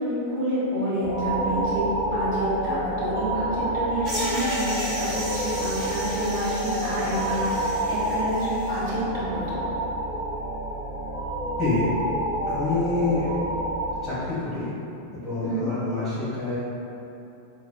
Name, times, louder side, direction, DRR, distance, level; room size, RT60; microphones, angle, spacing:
voice 1, 0.0-1.8 2.1-9.6 15.4-15.7, right 1 dB, 40° right, -10 dB, 1.4 m, -29 dB
sound 1, 1.0-13.9, right 1 dB, 50° left, 1.2 m, -28 dB
sound 2, 4.0-8.8, right 1 dB, 25° right, 1.1 m, -35 dB
voice 2, 11.6-11.9 12.5-13.4 14.0-14.7 15.1-16.6, left 3 dB, 10° left, -13 dB, 1.4 m, -27 dB
4.0 x 3.1 x 2.3 m, 2.8 s
figure-of-eight pair, 90°, 0 cm